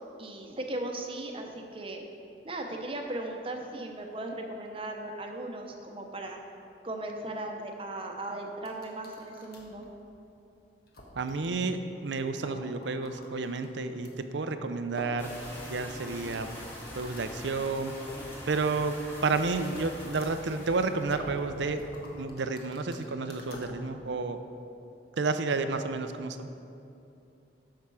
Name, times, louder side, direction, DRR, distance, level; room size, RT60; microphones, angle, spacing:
voice 1, 0.2-2.0 2.4-6.4 6.8-9.8, right 1 dB, 30° right, 3 dB, 0.9 m, -37 dB
sound 1, 8.6-9.8 10.3-10.4 10.9-11.3 11.6-11.7 11.9-12.0 12.3-14.1 14.9-17.3 17.7-18.3 19.2-23.7, left 1 dB, 60° left, 1.4 m, -48 dB
voice 2, 11.1-15.4 15.7-16.6 16.9-18.0 18.5-18.9 19.2-21.8 22.1-24.4 25.2-26.5, right 3 dB, 90° right, 9 dB, 0.6 m, -31 dB
sound 2, 15.2-22.3, left 1 dB, 15° left, 1.7 m, -44 dB
12.5 x 5.8 x 4.8 m, 2.7 s
head